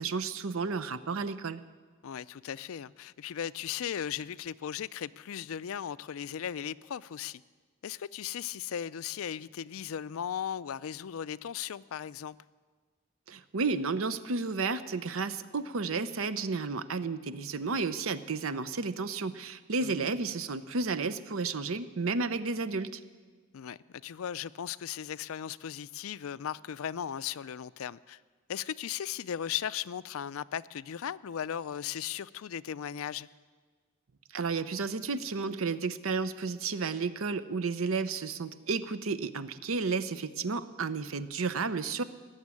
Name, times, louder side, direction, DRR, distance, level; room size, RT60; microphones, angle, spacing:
voice 1, 0.0-1.6 13.3-23.0 34.3-42.0, right 4 dB, 80° right, 14 dB, 0.7 m, -32 dB
voice 2, 2.0-7.4 7.8-12.4 19.8-20.1 23.5-28.2 28.5-33.3, left 9 dB, 85° left, 18 dB, 0.4 m, -37 dB
18.0 x 7.4 x 9.7 m, 1.5 s
head